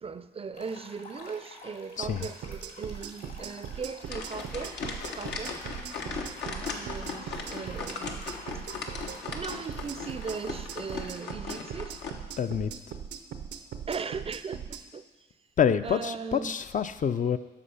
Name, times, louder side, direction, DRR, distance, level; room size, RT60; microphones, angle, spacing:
voice 1, 0.0-4.8 5.1-5.7 6.0-8.3 8.5-8.6 9.3-12.0 13.9-15.0 15.8-16.6, right 5 dB, 35° right, 0.4 m, -38 dB
sound 1, 0.5-11.1, left 2 dB, 65° left, 2.5 m, -50 dB
sound 2, 2.0-14.8, right 7 dB, 85° right, 0.6 m, -40 dB
sound 3, 4.0-12.1, left 4 dB, 85° left, 0.9 m, -38 dB
voice 2, 12.4-12.7 15.6-17.4, left 7 dB, 50° left, 0.4 m, -27 dB
8.5 x 5.9 x 5.6 m
cardioid pair, 65°, 17 cm